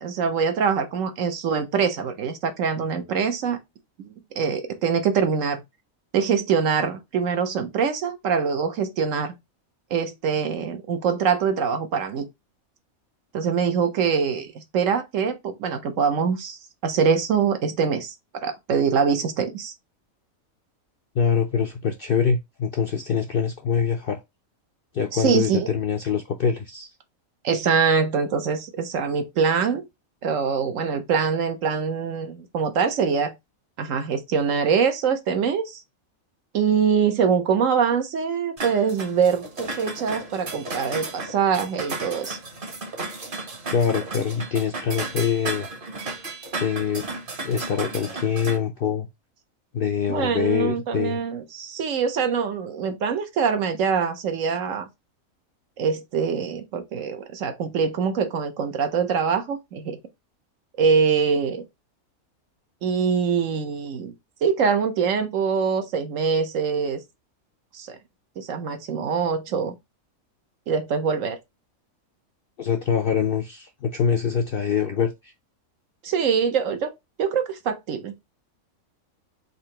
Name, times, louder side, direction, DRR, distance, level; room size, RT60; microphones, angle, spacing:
voice 1, 0.0-3.6 4.0-5.6 6.1-9.3 9.9-12.3 13.3-18.1 18.4-19.7 25.1-25.7 27.4-29.9 30.2-33.3 33.8-35.8 36.5-42.4 50.1-54.9 55.8-60.0 60.8-61.6 62.8-64.1 64.4-67.0 67.7-68.0 68.4-69.7 70.7-71.4 76.0-76.9 77.2-78.1, right 6 dB, 65° right, 1.2 m, -24 dB
voice 2, 21.1-24.2 24.9-26.9 43.7-45.7 46.6-47.0 47.4-49.1 49.7-51.2 72.6-75.3, left 7 dB, 65° left, 0.5 m, -24 dB
sound 1, 38.6-48.6, right 3 dB, 40° right, 1.2 m, -34 dB
4.0 x 2.7 x 4.3 m
omnidirectional pair, 1.5 m